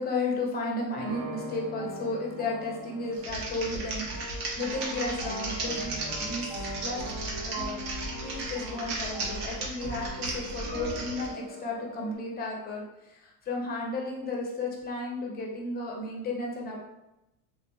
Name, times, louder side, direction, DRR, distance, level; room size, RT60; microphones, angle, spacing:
voice 1, 0.0-6.6 6.8-7.0 7.4-7.8 8.2-16.8, left 2 dB, 20° left, -1 dB, 0.6 m, -33 dB
sound 1, 0.9-12.1, equal, 50° right, 1.2 m, -41 dB
Typing, 3.1-11.3, right 2 dB, 80° right, 1.2 m, -35 dB
3.5 x 2.8 x 2.3 m, 0.91 s
cardioid pair, 145°, 45 cm